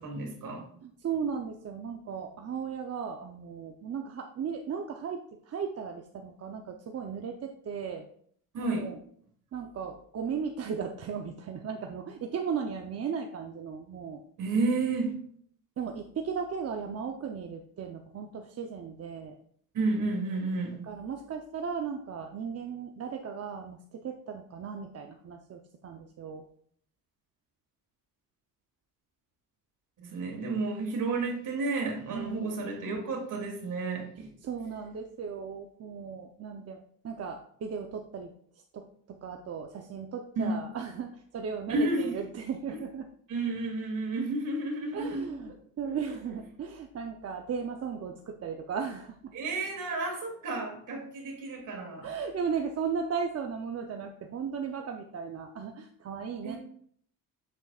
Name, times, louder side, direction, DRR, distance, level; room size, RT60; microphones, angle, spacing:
voice 1, 0.0-0.7 8.5-8.9 14.4-15.2 19.7-20.8 30.0-34.3 40.4-40.6 41.7-42.1 42.7-42.8 43.3-45.3 45.8-45.9 49.3-52.1 56.4-56.6, right 3 dB, 60° right, 1 dB, 2.6 m, -31 dB
voice 2, 0.8-8.1 8.6-9.0 9.5-14.2 15.8-19.4 20.8-26.4 32.1-32.7 34.4-38.3 38.7-43.1 44.9-49.3 52.0-56.6, right 6 dB, 45° right, 3 dB, 0.7 m, -36 dB
8.1 x 7.1 x 2.4 m, 0.63 s
cardioid pair, 115°, 34 cm